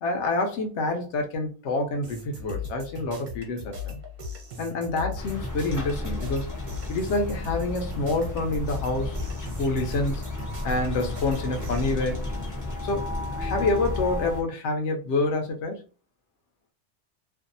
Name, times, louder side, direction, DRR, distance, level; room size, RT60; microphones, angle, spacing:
voice 1, 0.0-4.0 4.6-6.5 6.9-9.2 9.6-10.2 10.6-12.3 12.8-13.0 13.4-15.8, left 2 dB, 75° left, 0.9 m, -27 dB
sound 1, 2.0-11.9, left 4 dB, 45° right, 0.8 m, -38 dB
sound 2, 5.2-14.4, left 2 dB, 25° left, 0.4 m, -33 dB
2.6 x 2.3 x 2.5 m
omnidirectional pair, 1.2 m